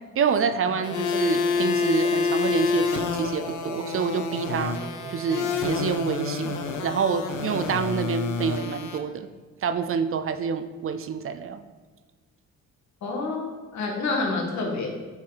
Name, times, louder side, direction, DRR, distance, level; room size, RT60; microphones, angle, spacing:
voice 1, 0.2-4.8 5.1-6.6 6.8-9.3 9.6-11.6, right 6 dB, 45° right, 11 dB, 0.5 m, -27 dB
sound 1, 0.6-8.0, right 3 dB, 15° right, 1.0 m, -40 dB
sound 2, 0.8-9.0, left 5 dB, 80° left, 0.8 m, -28 dB
voice 2, 13.0-14.9, left 3 dB, 65° left, 0 dB, 1.7 m, -28 dB
8.6 x 4.7 x 4.0 m, 1.4 s
cardioid pair, 90°, 30 cm